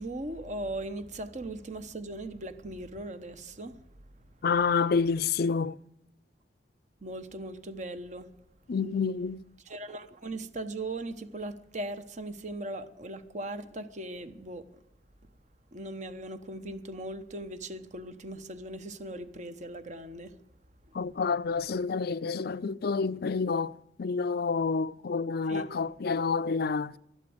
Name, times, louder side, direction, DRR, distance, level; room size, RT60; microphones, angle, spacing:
voice 1, 0.0-3.7 7.0-8.3 9.7-14.6 15.7-20.3 25.5-25.6, right 1 dB, 40° right, 1.0 m, -39 dB
voice 2, 4.4-5.8 8.7-9.4 20.9-23.7 24.0-26.9, left 5 dB, 60° left, 0.5 m, -28 dB
12.5 x 11.5 x 7.8 m
head